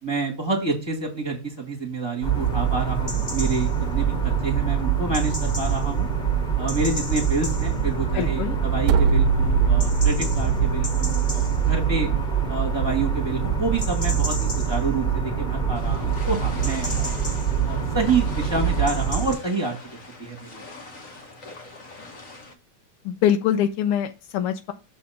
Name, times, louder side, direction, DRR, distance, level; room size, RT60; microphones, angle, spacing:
voice 1, 0.0-6.1 6.6-12.1 12.5-17.2 17.7-19.8 20.2-20.6, right 3 dB, 15° right, -1 dB, 1.6 m, -28 dB
sound 1, 2.2-19.3, right 7 dB, 25° left, 1.5 m, -24 dB
voice 2, 8.1-8.6 23.0-24.7, left 10 dB, 80° left, 8 dB, 1.5 m, -24 dB
sound 2, 8.8-10.9, right 4 dB, 80° right, 1.4 m, -22 dB
sound 3, 15.7-22.5, left 3 dB, 45° left, 1.2 m, -42 dB
6.6 x 3.4 x 5.6 m, 0.30 s
omnidirectional pair, 2.4 m